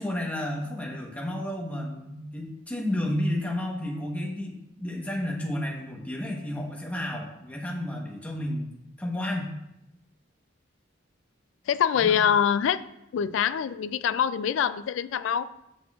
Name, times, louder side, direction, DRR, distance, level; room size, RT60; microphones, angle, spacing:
voice 1, 0.0-8.7 9.0-9.5 12.0-12.2, left 1 dB, 10° left, -1 dB, 1.0 m, -31 dB
voice 2, 11.7-12.8 13.1-15.5, left 8 dB, 80° left, 14 dB, 0.3 m, -24 dB
8.3 x 6.0 x 2.4 m, 0.86 s
head